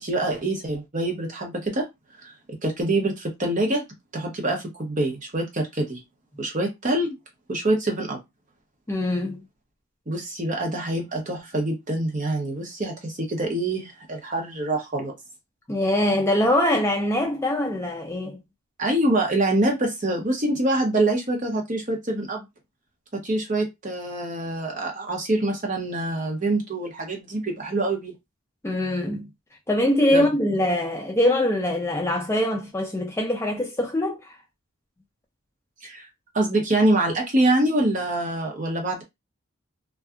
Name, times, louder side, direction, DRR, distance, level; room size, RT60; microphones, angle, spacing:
voice 1, 0.0-1.9 2.2-2.3 2.6-3.8 4.1-6.0 6.4-7.2 7.5-8.2 10.1-15.1 18.8-22.5 23.1-28.1 30.1-30.2 35.8-36.1 36.3-39.0, right 1 dB, 35° right, 0.8 m, -25 dB
voice 2, 8.9-9.4 15.7-18.4 28.6-29.3 29.7-34.4, left 1 dB, 10° left, 0.3 m, -23 dB
2.6 x 2.3 x 2.3 m
head